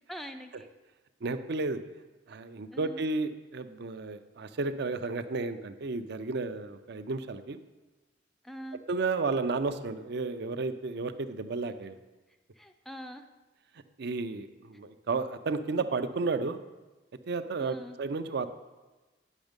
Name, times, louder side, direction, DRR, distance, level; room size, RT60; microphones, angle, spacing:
voice 1, 0.1-0.7 1.8-1.9 2.7-3.1 8.4-8.8 11.6-11.7 12.3-13.3 17.6-18.0, equal, ahead, 6 dB, 0.4 m, -44 dB
voice 2, 1.2-1.8 2.3-7.6 8.9-12.0 14.0-16.6 17.3-18.5, right 3 dB, 65° right, 10 dB, 0.5 m, -32 dB
9.2 x 6.2 x 5.2 m, 1.2 s
head